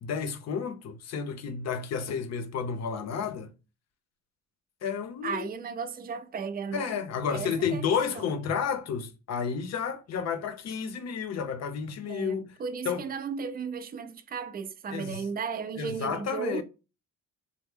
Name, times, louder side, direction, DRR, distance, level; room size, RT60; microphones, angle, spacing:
voice 1, 0.0-3.5 4.8-5.5 6.7-12.6 12.8-13.0 14.9-15.2 15.8-16.6, left 6 dB, 60° left, 0.7 m, -31 dB
voice 2, 5.2-6.9 7.3-8.3 12.0-16.6, right 5 dB, 30° right, 0.5 m, -35 dB
3.3 x 2.1 x 3.5 m
cardioid pair, 90°, 30 cm